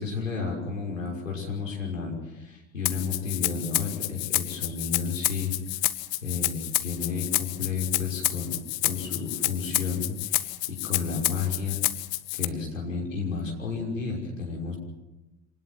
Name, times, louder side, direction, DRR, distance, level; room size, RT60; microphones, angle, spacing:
voice 1, 0.0-5.5 6.2-8.5 8.8-11.8 12.3-14.8, left 5 dB, 80° left, -1 dB, 5.9 m, -32 dB
Rattle (instrument), 2.9-12.5, left 21 dB, 50° left, 1.2 m, -29 dB
26.0 x 19.5 x 7.5 m, 1.0 s
figure-of-eight pair, 75°, 38 cm